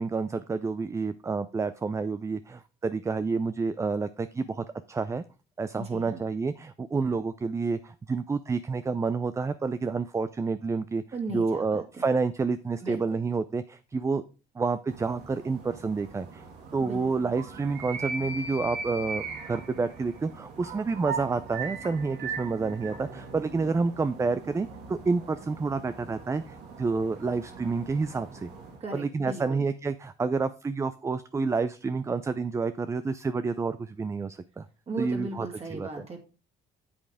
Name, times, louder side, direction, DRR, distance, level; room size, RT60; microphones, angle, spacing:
voice 1, 0.0-5.2 5.6-11.0 11.3-14.2 14.6-16.4 16.7-28.5 28.9-34.7 35.0-35.9, right 4 dB, 15° right, 13 dB, 0.4 m, -29 dB
voice 2, 5.7-6.2 11.1-12.1 12.8-13.0 16.8-17.1 28.8-29.7 34.9-36.2, right 2 dB, 40° right, 1 dB, 2.7 m, -37 dB
sound 1, 14.9-28.8, right 4 dB, 85° right, 2.1 m, -40 dB
8.5 x 7.6 x 3.5 m, 0.32 s
cardioid pair, 110°, 17 cm